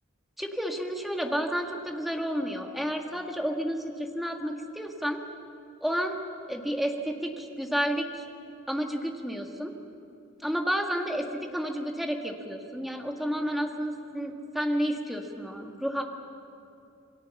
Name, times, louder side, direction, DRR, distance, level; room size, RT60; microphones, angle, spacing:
voice 1, 0.4-5.2 5.8-6.2 6.5-8.2 8.7-9.7 10.4-16.0, equal, ahead, 2 dB, 1.8 m, -31 dB
28.0 x 21.5 x 7.2 m, 2.7 s
head